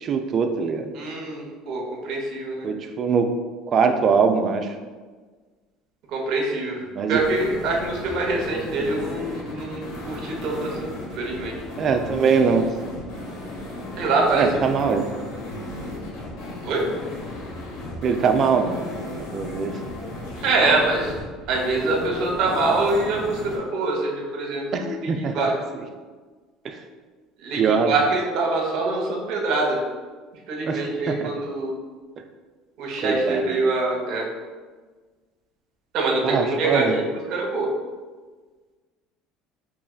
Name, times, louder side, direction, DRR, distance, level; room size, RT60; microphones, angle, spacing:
voice 1, 0.0-0.9 2.6-3.3 3.7-4.7 6.9-7.2 11.8-12.7 14.3-15.0 18.0-18.9 19.3-19.7 24.7-25.4 25.7-25.8 26.6-26.8 27.5-28.0 30.6-31.3 33.0-33.6 36.2-37.0, right 5 dB, 45° right, 6 dB, 0.4 m, -22 dB
voice 2, 0.9-2.7 6.1-6.8 7.1-10.9 11.2-11.5 14.0-14.4 16.6-16.8 20.4-21.1 21.5-25.5 27.4-29.8 30.5-31.7 32.8-34.3 35.9-37.7, right 3 dB, 65° right, -1 dB, 0.9 m, -24 dB
sound 1, 7.1-23.6, left 2 dB, 75° left, 1.1 m, -35 dB
4.8 x 3.1 x 2.3 m, 1.4 s
supercardioid pair, 90°, 0 cm